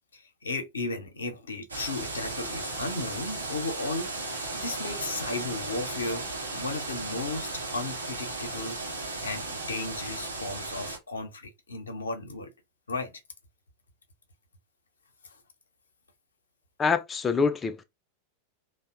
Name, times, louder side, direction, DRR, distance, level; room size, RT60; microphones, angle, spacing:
voice 1, 0.1-4.1 4.5-6.3 6.5-8.8 9.2-12.5 12.9-13.1 15.2-15.4, left 3 dB, 75° left, 0.6 m, -35 dB
sound 1, 1.7-11.0, right 2 dB, 80° right, 0.7 m, -35 dB
voice 2, 16.8-17.8, left 5 dB, 20° left, 0.3 m, -25 dB
2.7 x 2.0 x 2.4 m
figure-of-eight pair, 90°, 0 cm